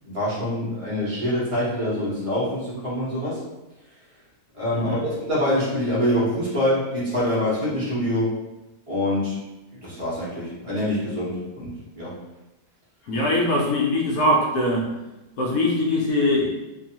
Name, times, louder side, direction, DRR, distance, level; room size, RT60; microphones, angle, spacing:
voice 1, 0.0-3.4 4.5-8.3 8.9-9.4 9.7-12.1, left 1 dB, 30° right, -8 dB, 0.7 m, -25 dB
voice 2, 13.1-14.9 15.4-16.5, left 1 dB, 70° left, -2 dB, 0.9 m, -22 dB
2.7 x 2.3 x 2.8 m, 1.0 s
omnidirectional pair, 1.8 m